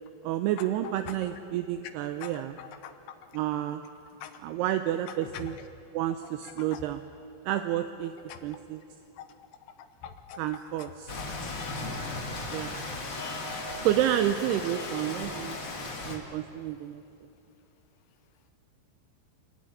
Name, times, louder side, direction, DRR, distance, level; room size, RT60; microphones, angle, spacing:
voice 1, 0.2-2.6 3.3-3.8 4.4-5.6 5.9-7.0 7.5-8.1 8.4-8.8 10.4-11.1 12.5-12.7 13.8-15.6 16.0-17.0, right 12 dB, 80° right, 8 dB, 2.4 m, -30 dB
voice 2, 2.6-2.9 4.2-4.3 5.3-5.5 6.7-6.8 8.3-8.4 9.2-9.3 10.0-10.4 10.8-10.9 11.2-11.3 12.1-12.2, left 9 dB, 75° left, 7 dB, 3.0 m, -42 dB
Rain, 11.1-16.2, left 2 dB, 35° left, 1.8 m, -36 dB
26.5 x 12.0 x 9.8 m, 2.7 s
omnidirectional pair, 5.3 m